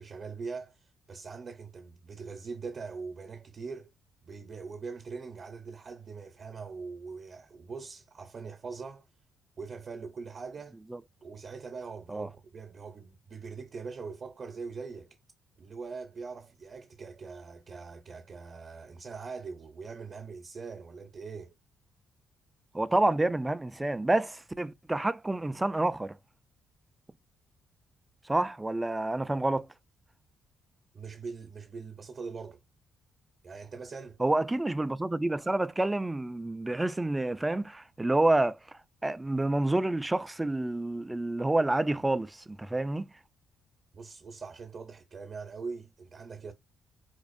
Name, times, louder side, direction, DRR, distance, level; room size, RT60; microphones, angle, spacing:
voice 1, 0.0-3.9 4.2-9.1 9.6-10.8 11.2-15.2 15.6-21.5 30.9-32.6 33.4-34.2 43.9-46.5, right 4 dB, 45° right, 0.8 m, -42 dB
voice 2, 22.7-26.2 28.2-29.7 34.2-43.1, right 2 dB, 15° right, 0.4 m, -28 dB
4.3 x 2.4 x 2.5 m
cardioid pair, 90°, 0 cm